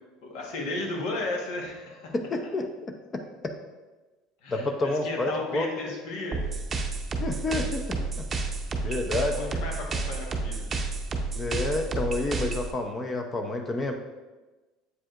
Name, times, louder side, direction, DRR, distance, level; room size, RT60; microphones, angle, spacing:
voice 1, 0.2-2.1 4.4-6.4 9.1-10.7, left 2 dB, 75° left, 0 dB, 1.3 m, -34 dB
voice 2, 2.1-2.7 4.5-5.9 7.2-8.1 8.8-9.5 11.4-13.9, left 2 dB, 25° left, 5 dB, 0.6 m, -29 dB
sound 1, 6.3-12.7, right 3 dB, 30° right, 0.7 m, -31 dB
7.9 x 4.9 x 2.5 m, 1.2 s
supercardioid pair, 110°, 0 cm